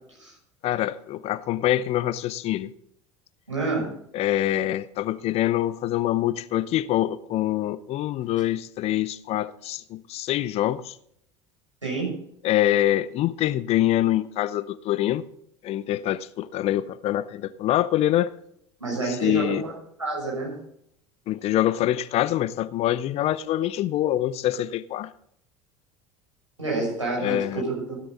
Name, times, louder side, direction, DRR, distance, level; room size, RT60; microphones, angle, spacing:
voice 1, 0.6-2.7 4.1-11.0 12.4-15.2 15.6-18.3 19.0-19.6 21.3-25.1 27.2-27.6, left 13 dB, 40° left, 0.7 m, -25 dB
voice 2, 3.5-3.9 11.8-12.1 18.8-19.7 20.0-20.6 26.6-28.0, right 3 dB, 85° right, 6.7 m, -28 dB
16.0 x 10.5 x 4.0 m
figure-of-eight pair, 70°, 16 cm